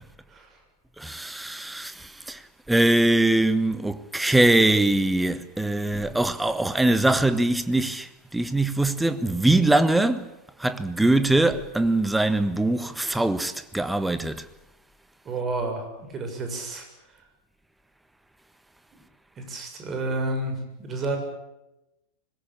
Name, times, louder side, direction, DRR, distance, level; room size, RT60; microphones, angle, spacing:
voice 1, 1.0-2.4 2.7-10.3 10.6-14.4, right 2 dB, 5° right, 1.4 m, -22 dB
voice 2, 15.3-15.9 16.1-16.9 19.5-21.2, right 2 dB, 25° right, 7.1 m, -30 dB
25.0 x 21.5 x 8.8 m
figure-of-eight pair, 90°, 0 cm